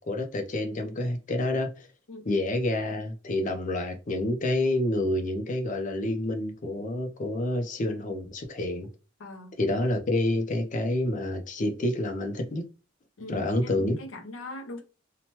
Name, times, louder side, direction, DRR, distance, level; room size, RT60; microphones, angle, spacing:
voice 1, 0.0-1.9 2.3-8.9 9.6-12.6 13.3-14.0, left 1 dB, 40° left, 0.5 m, -28 dB
voice 2, 2.1-2.4 9.2-9.5 13.2-14.8, left 2 dB, 85° left, 0.7 m, -41 dB
2.8 x 2.2 x 2.9 m
head